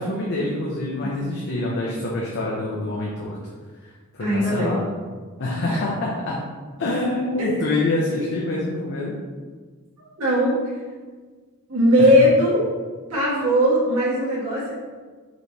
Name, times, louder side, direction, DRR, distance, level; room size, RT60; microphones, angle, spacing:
voice 1, 0.0-3.4 4.1-4.9 5.4-6.4 6.8-9.1 12.0-12.1, left 2 dB, 55° left, -4 dB, 0.7 m, -26 dB
voice 2, 4.2-4.8 5.6-5.8 7.4-7.5 10.2-10.5 11.7-12.6 13.1-14.9, equal, 70° right, -7 dB, 1.4 m, -19 dB
5.1 x 3.0 x 3.3 m, 1.5 s
head